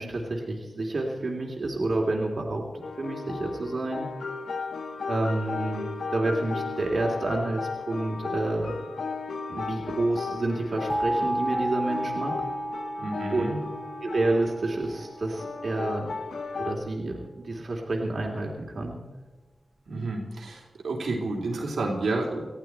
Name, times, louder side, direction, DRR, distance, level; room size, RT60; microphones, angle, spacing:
voice 1, 0.0-4.1 5.1-5.9 6.1-8.8 9.5-12.4 13.3-13.5 14.0-16.1 16.6-19.0, right 2 dB, 60° right, -1 dB, 2.6 m, -29 dB
sound 1, 2.8-16.7, left 4 dB, 85° left, 1.2 m, -35 dB
sound 2, 10.9-15.6, right 1 dB, 10° right, 1.0 m, -32 dB
voice 2, 13.0-13.6 19.9-22.5, right 2 dB, 85° right, -1 dB, 3.2 m, -30 dB
19.5 x 14.0 x 4.5 m, 1.2 s
cardioid pair, 50°, 0 cm